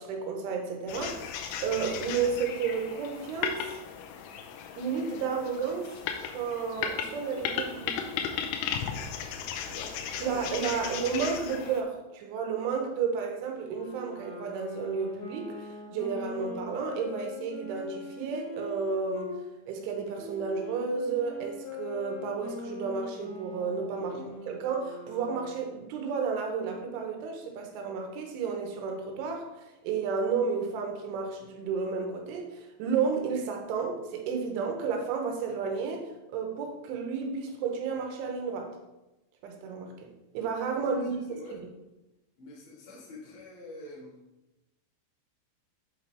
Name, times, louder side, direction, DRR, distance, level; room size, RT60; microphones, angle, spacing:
voice 1, 0.0-1.3 1.6-3.8 4.8-6.0 6.3-8.0 10.2-19.3 19.7-24.1 24.5-38.7 39.4-39.9 40.3-41.6, right 5 dB, 80° right, 2 dB, 3.3 m, -32 dB
sound 1, 0.9-11.8, left 8 dB, 90° left, 3.2 m, -36 dB
voice 2, 9.7-11.1 24.0-24.3 40.9-41.6 42.4-44.1, left 2 dB, 50° left, -6 dB, 1.6 m, -47 dB
Wind instrument woodwind instrument, 13.6-19.4 20.1-25.6, left 2 dB, 70° left, 2.7 m, -42 dB
8.1 x 5.6 x 3.3 m, 0.97 s
omnidirectional pair, 5.7 m